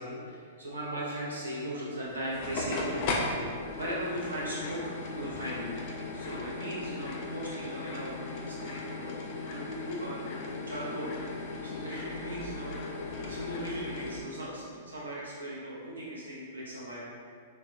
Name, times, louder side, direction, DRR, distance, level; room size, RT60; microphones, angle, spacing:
voice 1, 0.0-3.4 3.7-4.8 5.1-5.8 6.1-17.1, right 1 dB, 75° right, -6 dB, 0.4 m, -38 dB
sound 1, 2.0-14.2, left 3 dB, 40° left, 0.4 m, -37 dB
3.4 x 2.0 x 2.5 m, 2.2 s
figure-of-eight pair, 105°, 0 cm